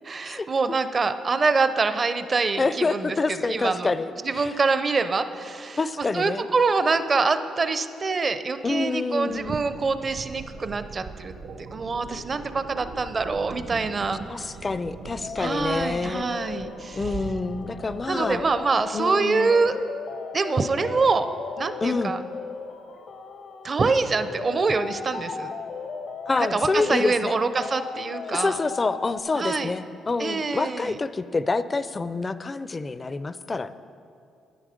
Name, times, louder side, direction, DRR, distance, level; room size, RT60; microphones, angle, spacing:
voice 1, 0.1-3.2 3.4-3.9 4.2-11.3 11.7-14.2 15.4-17.0 18.1-19.8 20.3-21.3 21.6-22.2 23.6-25.5 26.5-28.6 29.4-29.7 30.2-31.0, right 4 dB, 35° right, 11 dB, 0.6 m, -25 dB
voice 2, 2.6-4.1 4.4-4.6 5.8-6.5 8.6-9.6 14.3-16.2 16.9-18.4 18.9-19.5 21.8-22.1 26.3-27.4 28.2-33.7, left 3 dB, 30° left, 14 dB, 0.4 m, -27 dB
sound 1, 9.2-18.7, right 4 dB, 70° right, 1.1 m, -40 dB
sound 2, 15.2-29.2, left 5 dB, 60° left, 0.7 m, -37 dB
11.0 x 9.9 x 5.1 m, 2.5 s
cardioid pair, 90°, 0 cm